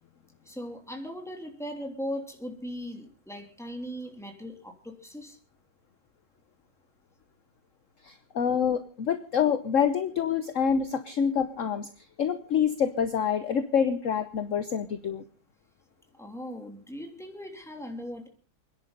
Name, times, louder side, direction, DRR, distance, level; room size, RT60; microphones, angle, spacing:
voice 1, 0.4-5.4 16.2-18.3, equal, ahead, 3 dB, 2.9 m, -38 dB
voice 2, 8.0-11.9 12.2-15.2, left 7 dB, 55° left, 10 dB, 0.9 m, -26 dB
29.0 x 10.5 x 3.9 m, 0.38 s
omnidirectional pair, 2.3 m